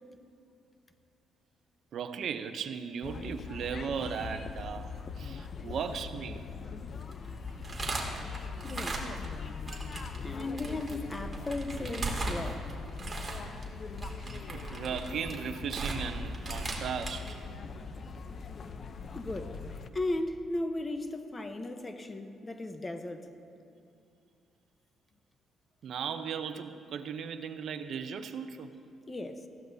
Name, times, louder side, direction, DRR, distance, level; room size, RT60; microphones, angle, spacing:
voice 1, 1.9-4.9 5.2-6.4 9.0-9.2 14.5-17.3 25.8-28.7, right 7 dB, 65° right, 9 dB, 0.7 m, -37 dB
sound 1, 3.0-19.9, left 5 dB, 50° left, 0.7 m, -41 dB
sound 2, 7.0-9.4 9.7-17.3, right 2 dB, 25° right, 2.5 m, -38 dB
voice 2, 8.6-9.1 10.2-12.7 19.1-19.6 19.9-23.3 29.1-29.5, left 2 dB, 25° left, 7 dB, 1.0 m, -36 dB
19.5 x 15.0 x 2.8 m, 2.5 s
cardioid pair, 90°, 0 cm